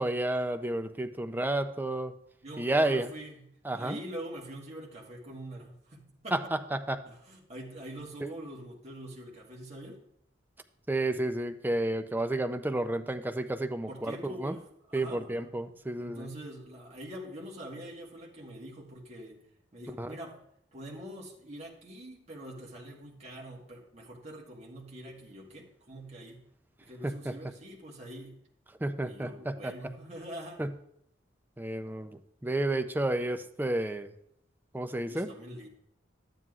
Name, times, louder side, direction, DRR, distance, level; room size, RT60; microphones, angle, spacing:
voice 1, 0.0-2.1 2.6-3.1 3.6-4.0 6.3-7.0 8.2-8.3 10.9-14.6 14.9-16.3 20.0-20.2 27.0-27.4 28.8-29.7 30.6-30.7 31.6-34.1 34.7-35.3, right 1 dB, 10° right, 8 dB, 0.4 m, -31 dB
voice 2, 2.4-3.5 3.7-6.4 7.1-10.0 13.9-15.5 16.0-19.4 19.7-20.4 20.7-26.4 26.8-28.4 29.0-30.6 35.1-35.7, right 1 dB, 35° right, -3 dB, 1.4 m, -44 dB
12.5 x 9.1 x 2.4 m, 0.73 s
head